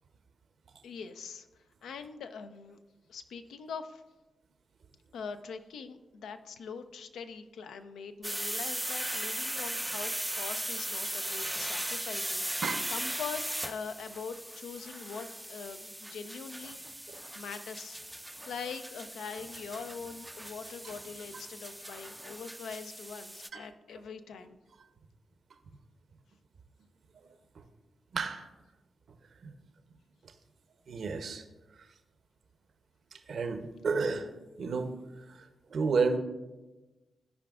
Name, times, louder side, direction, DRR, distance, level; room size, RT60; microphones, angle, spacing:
voice 1, 0.8-1.5 1.8-2.8 3.1-4.0 5.1-12.6 12.9-16.8 17.4-18.0 18.5-24.6, left 5 dB, 80° left, 9 dB, 0.4 m, -43 dB
Plasma cutter, 8.2-23.5, right 1 dB, 5° right, 0.3 m, -38 dB
voice 2, 28.1-28.5 29.4-29.6 30.9-31.4 33.3-34.3 34.6-34.9 35.3-36.2, right 4 dB, 70° right, 7 dB, 0.7 m, -31 dB
14.0 x 4.9 x 2.4 m, 1.1 s
supercardioid pair, 40°, 0 cm